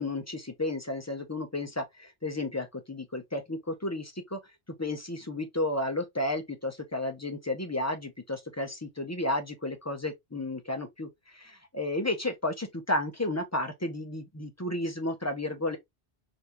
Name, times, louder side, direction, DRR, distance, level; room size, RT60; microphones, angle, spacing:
voice 1, 0.0-4.4 4.8-15.8, left 1 dB, 25° left, 0.4 m, -32 dB
3.4 x 2.5 x 2.8 m
omnidirectional pair, 1.1 m